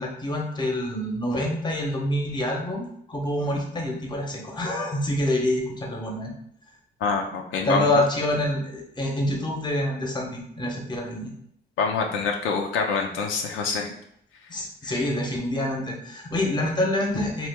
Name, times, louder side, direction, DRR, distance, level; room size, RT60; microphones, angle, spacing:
voice 1, 0.0-6.3 7.6-11.3 14.5-17.5, left 1 dB, 20° left, 0 dB, 0.9 m, -26 dB
voice 2, 7.0-7.9 11.8-13.9 14.8-14.9, left 5 dB, 85° left, 2 dB, 0.5 m, -26 dB
3.0 x 2.4 x 3.5 m, 0.69 s
cardioid pair, 90°, 20 cm